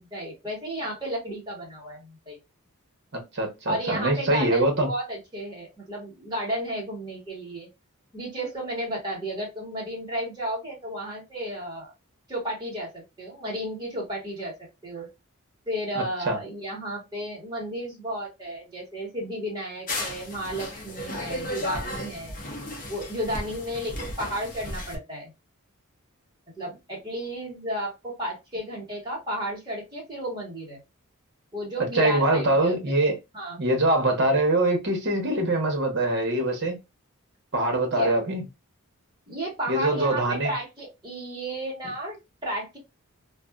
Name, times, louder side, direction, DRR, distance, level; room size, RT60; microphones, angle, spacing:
voice 1, 0.0-2.4 3.6-7.7 8.1-11.9 12.3-14.5 14.8-15.1 15.7-22.4 22.9-25.3 26.6-30.8 31.5-32.7 33.3-33.6 37.9-38.2 39.3-42.8, right 1 dB, 20° right, 1.3 m, -33 dB
voice 2, 3.3-4.9 15.9-16.4 31.9-33.2 33.6-36.8 37.5-38.4 39.7-40.5, right 2 dB, 55° right, 1.0 m, -23 dB
sound 1, 19.9-25.0, left 1 dB, 40° left, 0.8 m, -34 dB
2.5 x 2.4 x 2.3 m
head